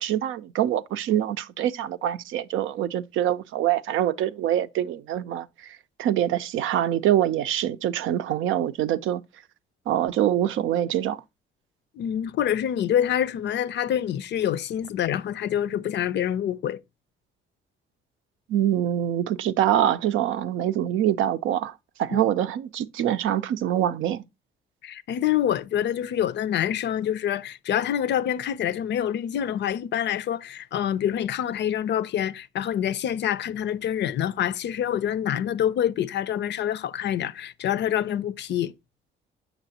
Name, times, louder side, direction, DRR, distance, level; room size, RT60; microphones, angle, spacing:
voice 1, 0.0-9.2 9.9-11.2 18.5-21.7 22.0-24.2, right 11 dB, 80° right, 0.5 m, -25 dB
voice 2, 12.0-16.8 22.1-22.2 24.8-38.7, left 10 dB, 65° left, 0.5 m, -26 dB
6.9 x 6.6 x 2.7 m
cardioid pair, 90°, 20 cm